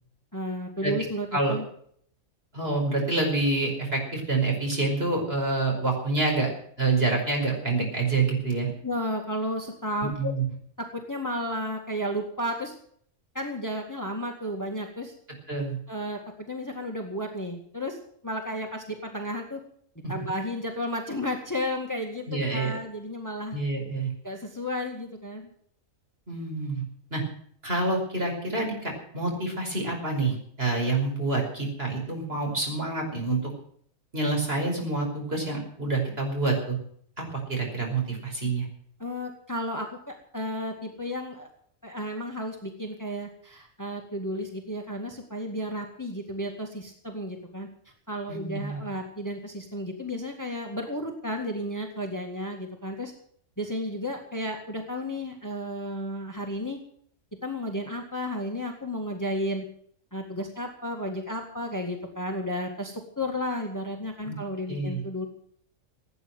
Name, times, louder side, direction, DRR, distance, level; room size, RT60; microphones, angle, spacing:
voice 1, 0.3-1.6 8.8-10.3 10.8-12.8 13.3-15.1 15.9-18.0 18.2-19.6 20.1-23.6 24.2-25.4 39.0-41.5 41.8-47.7 48.1-53.1 53.6-56.8 57.4-59.7 60.1-65.3, equal, 15° left, 3 dB, 2.0 m, -33 dB
voice 2, 2.5-6.5 6.8-8.7 10.0-10.4 15.5-15.8 20.0-20.2 22.3-22.7 23.5-24.1 26.3-26.8 27.1-27.2 27.6-33.5 34.1-36.8 37.2-38.7 48.3-48.8 64.2-64.4 64.7-65.0, right 3 dB, 45° right, 1 dB, 5.6 m, -27 dB
17.0 x 9.5 x 7.9 m, 0.62 s
omnidirectional pair, 1.4 m